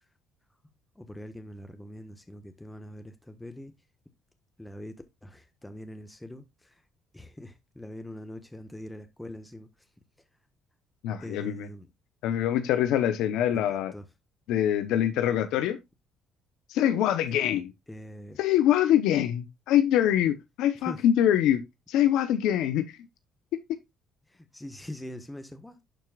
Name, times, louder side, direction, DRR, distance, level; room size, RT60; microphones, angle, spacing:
voice 1, 1.0-3.7 4.6-5.0 5.2-6.4 7.1-9.7 11.2-11.9 13.5-14.0 17.9-18.4 20.8-21.0 24.3-25.8, left 1 dB, 10° left, 1.3 m, -42 dB
voice 2, 11.0-11.7 12.2-13.9 14.5-15.8 16.7-17.7 18.4-21.6 21.9-22.9 23.7-23.8, left 11 dB, 75° left, 0.8 m, -24 dB
11.5 x 4.5 x 2.4 m
supercardioid pair, 75°, 0 cm